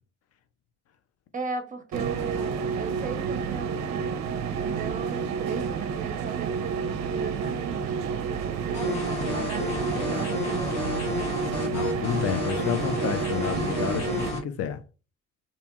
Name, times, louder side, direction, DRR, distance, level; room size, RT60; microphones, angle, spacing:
voice 1, 1.3-4.0 4.6-10.8, right 5 dB, 25° right, 0.8 m, -37 dB
sound 1, 1.9-14.3, right 6 dB, 55° right, 0.5 m, -30 dB
sound 2, 8.7-14.4, left 3 dB, 85° left, 1.0 m, -31 dB
voice 2, 11.6-14.8, left 8 dB, 45° left, 0.4 m, -30 dB
2.7 x 2.7 x 2.2 m
hypercardioid pair, 65°, 34 cm